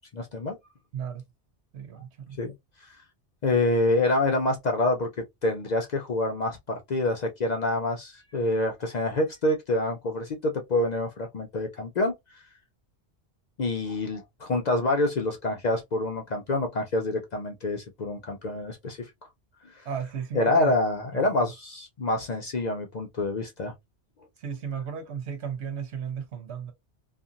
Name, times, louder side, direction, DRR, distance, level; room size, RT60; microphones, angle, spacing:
voice 1, 0.1-0.6 2.4-2.5 2.8-3.0 3.4-5.1 5.4-12.1 13.6-19.1 19.8-19.9 20.3-23.7, left 2 dB, 55° left, 0.5 m, -27 dB
voice 2, 0.9-1.3 1.7-2.4 19.9-20.7 24.4-26.7, right 7 dB, 75° right, 1.0 m, -34 dB
2.8 x 2.4 x 2.4 m
omnidirectional pair, 1.1 m